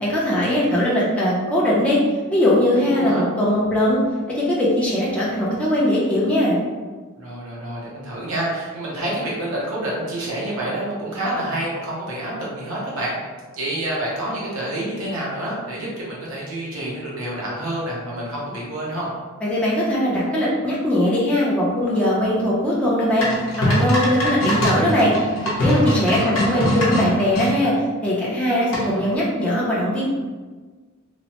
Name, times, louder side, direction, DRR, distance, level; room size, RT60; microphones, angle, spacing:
voice 1, 0.0-2.0 2.3-4.0 4.3-6.6 19.4-23.3 23.6-25.1 25.6-27.7 28.0-30.1, left 1 dB, 5° left, -7 dB, 0.5 m, -20 dB
voice 2, 2.8-3.2 7.2-13.1 13.5-19.1 25.7-26.7, right 1 dB, 85° right, -5 dB, 0.8 m, -28 dB
sound 1, 23.2-27.5 28.7-29.1, equal, 75° left, 0.8 m, -22 dB
3.0 x 2.0 x 2.9 m, 1.4 s
head